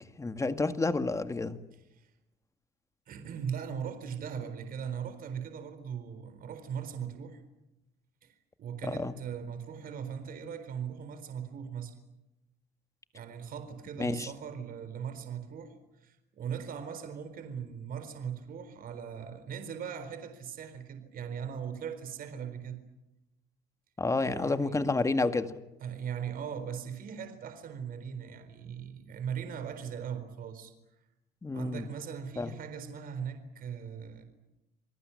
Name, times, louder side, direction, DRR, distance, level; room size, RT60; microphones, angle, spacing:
voice 1, 0.2-1.6 8.8-9.2 14.0-14.3 24.0-25.6 31.4-31.9 32.4-32.5, left 3 dB, 20° left, 9 dB, 2.0 m, -30 dB
voice 2, 3.1-7.4 8.2-11.9 13.1-22.8 24.3-24.8 25.8-30.7 31.5-34.2, right 7 dB, 60° right, 9 dB, 4.2 m, -39 dB
28.0 x 19.0 x 9.9 m, 0.92 s
cardioid pair, 110°, 17 cm